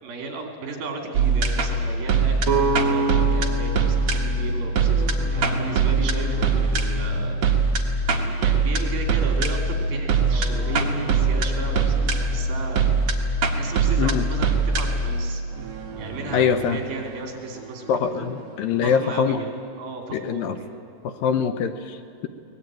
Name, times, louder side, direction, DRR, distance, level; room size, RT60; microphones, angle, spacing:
voice 1, 0.0-7.4 8.1-13.0 13.5-15.4 16.0-18.3 18.8-20.7, right 3 dB, 70° right, 2 dB, 4.6 m, -34 dB
sound 1, 1.1-18.3, right 4 dB, 50° right, 2.3 m, -23 dB
sound 2, 2.4-6.3, right 3 dB, 25° right, 2.3 m, -27 dB
voice 2, 16.3-16.8 17.9-19.4 20.1-20.6 21.0-22.3, left 7 dB, 75° left, 9 dB, 2.4 m, -23 dB
23.0 x 19.5 x 9.0 m, 2.5 s
omnidirectional pair, 4.5 m